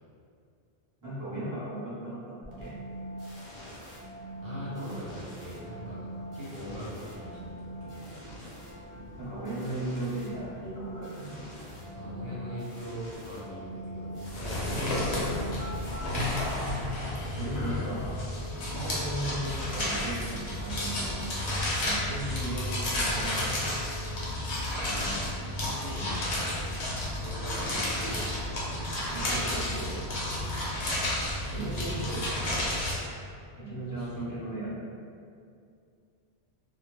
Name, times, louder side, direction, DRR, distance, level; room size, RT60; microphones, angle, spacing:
voice 1, 1.0-2.7 9.1-11.4 17.4-18.2 18.7-21.3 21.8-23.6 29.1-29.9 31.5-32.7 33.6-34.9, right 1 dB, 20° right, -10 dB, 0.8 m, -36 dB
sound 1, 2.4-17.1, right 1 dB, 45° left, 0.4 m, -43 dB
voice 2, 4.4-8.1 11.7-15.5 24.8-26.6 27.2-30.8 33.9-34.4, equal, 65° right, -8 dB, 0.8 m, -41 dB
sound 2, 14.2-33.0, left 1 dB, 80° left, 0.9 m, -31 dB
sound 3, 14.9-15.0 15.5-16.4 17.4-17.5 18.2-19.3 23.2-24.3 24.6-24.7 25.3-26.2 26.6-27.4 27.6-28.2, left 2 dB, 40° right, 0.3 m, -48 dB
2.1 x 2.1 x 3.0 m, 2.3 s
omnidirectional pair, 1.1 m